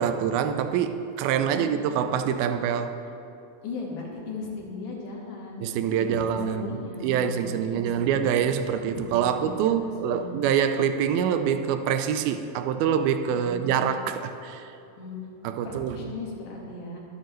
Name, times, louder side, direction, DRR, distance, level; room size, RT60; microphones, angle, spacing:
voice 1, 0.0-3.0 5.6-6.8 7.0-14.7 15.4-16.0, right 8 dB, 85° right, 9 dB, 2.5 m, -25 dB
voice 2, 1.3-1.7 3.6-5.6 6.0-7.4 7.7-8.2 8.8-10.4 13.3-13.9 15.0-15.3 15.6-17.0, left 3 dB, 60° left, -2 dB, 3.1 m, -37 dB
23.5 x 9.3 x 3.2 m, 2.7 s
omnidirectional pair, 4.2 m